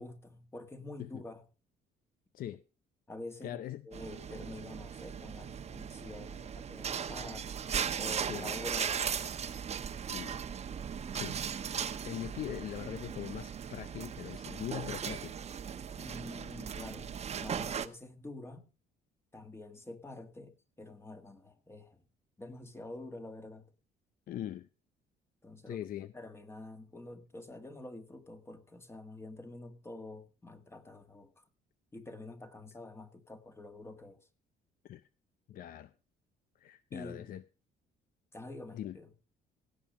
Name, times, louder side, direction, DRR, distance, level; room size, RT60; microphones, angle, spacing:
voice 1, 0.0-1.5 3.1-7.5 8.0-9.4 16.0-18.7 19.3-22.0 22.4-23.7 25.4-25.8 26.1-31.4 31.9-34.2 36.9-37.3 38.3-39.1, left 2 dB, 15° left, 1.8 m, -47 dB
voice 2, 3.4-3.8 8.3-8.6 10.1-10.4 11.1-11.5 12.0-15.3 24.3-24.7 25.7-26.1 34.8-35.1 35.5-35.9 36.6-37.4 38.7-39.0, left 11 dB, 60° left, 0.6 m, -41 dB
sound 1, 3.9-17.9, right 7 dB, 40° right, 1.0 m, -38 dB
17.0 x 7.2 x 5.2 m
cardioid pair, 110°, 17 cm